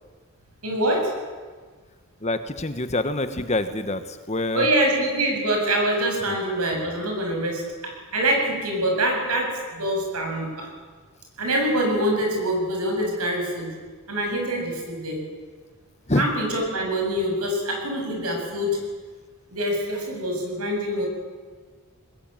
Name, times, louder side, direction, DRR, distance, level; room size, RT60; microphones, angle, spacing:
voice 1, 0.6-1.1 4.5-7.7 8.1-10.7 11.4-13.7 14.1-15.2 16.1-18.8 19.5-21.1, right 1 dB, 90° right, 2 dB, 7.7 m, -25 dB
voice 2, 2.2-4.7 6.3-6.4 16.1-16.3, left 2 dB, 30° left, 10 dB, 1.3 m, -26 dB
21.0 x 20.5 x 9.1 m, 1.5 s
head